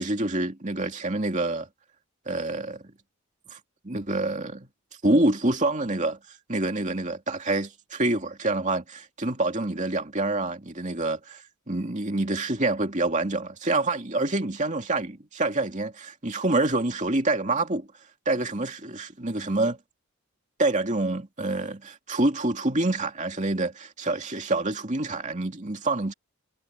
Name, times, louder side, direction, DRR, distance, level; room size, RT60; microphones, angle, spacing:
voice 1, 0.0-1.7 2.3-2.8 3.5-3.6 3.8-4.7 5.0-6.2 6.5-17.9 18.3-19.8 20.6-26.1, right 2 dB, 35° right, 2.6 m, -27 dB
head